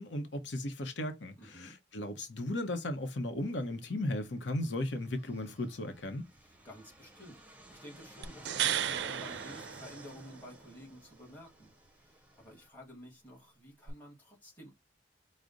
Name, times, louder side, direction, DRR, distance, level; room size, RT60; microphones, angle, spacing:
voice 1, 0.0-6.3, left 1 dB, 75° left, 0.8 m, -36 dB
voice 2, 1.4-1.8 6.3-14.7, equal, 10° left, 1.7 m, -52 dB
Fixed-wing aircraft airplane, 3.4-12.7, right 1 dB, 10° right, 0.7 m, -54 dB
sound 1, 8.2-10.5 13.9-14.0, right 10 dB, 65° right, 0.4 m, -34 dB
4.9 x 2.1 x 3.8 m
head